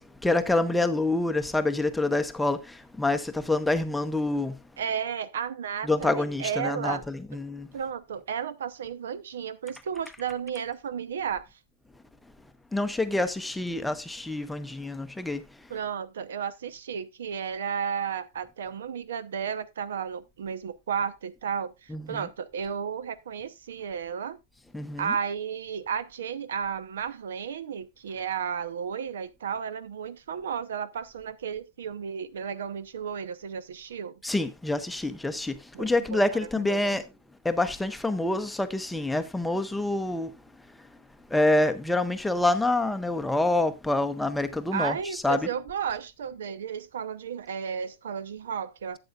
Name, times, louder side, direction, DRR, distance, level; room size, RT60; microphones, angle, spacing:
voice 1, 0.2-4.6 5.8-7.7 12.7-15.4 21.9-22.3 24.7-25.1 34.2-37.0 37.4-40.3 41.3-45.5, left 2 dB, 5° left, 0.6 m, -27 dB
voice 2, 4.8-7.0 7.7-11.5 15.7-24.4 25.0-34.1 35.7-36.8 44.7-49.0, right 7 dB, 85° right, 0.8 m, -33 dB
12.0 x 7.7 x 2.4 m
supercardioid pair, 155°, 0 cm